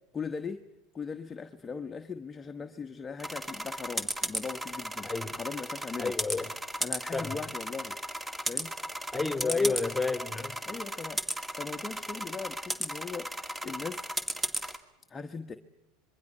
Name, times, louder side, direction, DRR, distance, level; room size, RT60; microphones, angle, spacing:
voice 1, 0.1-0.6 0.9-6.1 6.8-7.9 8.5-8.7 9.4-9.8 10.7-14.0 15.1-15.6, left 5 dB, 20° left, 7 dB, 1.1 m, -39 dB
sound 1, 3.2-14.8, right 1 dB, 10° right, 2.2 m, -35 dB
voice 2, 5.0-5.4 6.0-6.5 7.1-7.4 9.1-10.6, left 3 dB, 5° left, 8 dB, 2.6 m, -30 dB
26.0 x 22.0 x 5.5 m, 0.94 s
hypercardioid pair, 90°, 0 cm